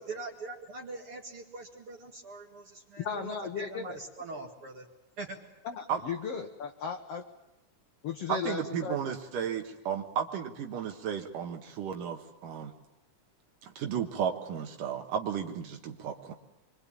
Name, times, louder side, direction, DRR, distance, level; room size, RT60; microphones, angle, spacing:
voice 1, 0.0-4.9 5.2-5.4, right 3 dB, 45° right, 0 dB, 2.6 m, -42 dB
voice 2, 3.0-4.0 5.6-7.3 8.0-9.0, left 6 dB, 60° left, 3 dB, 1.9 m, -36 dB
voice 3, 8.3-12.7 13.6-16.3, right 8 dB, 85° right, 3 dB, 3.0 m, -34 dB
25.5 x 23.5 x 8.7 m, 0.97 s
omnidirectional pair, 3.7 m